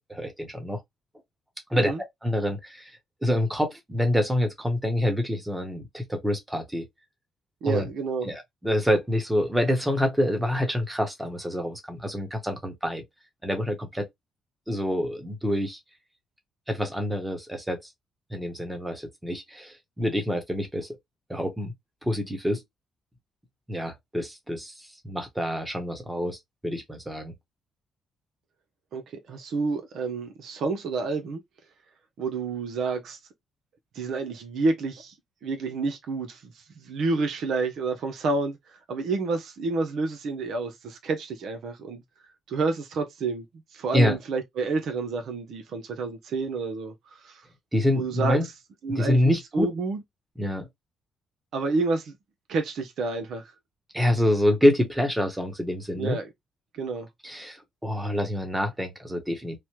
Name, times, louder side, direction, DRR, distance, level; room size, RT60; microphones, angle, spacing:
voice 1, 0.1-0.8 1.7-1.9 2.2-2.9 3.2-6.9 7.6-7.9 8.2-13.0 13.4-14.1 14.7-15.8 16.7-17.8 18.3-20.9 21.3-21.7 22.0-22.6 23.7-27.3 43.9-44.2 47.7-48.4 48.9-49.7 50.4-50.7 53.9-56.2 57.2-59.6, left 1 dB, 10° right, 1.0 m, -26 dB
voice 2, 7.6-8.3 28.9-31.4 32.2-33.2 33.9-35.1 35.4-38.6 38.9-42.0 42.5-43.4 43.7-47.4 47.9-48.4 48.8-50.0 51.5-52.1 52.5-53.4 55.9-56.3 56.7-57.1, right 3 dB, 70° right, 0.7 m, -29 dB
3.2 x 2.1 x 2.9 m
cardioid pair, 90°, 0 cm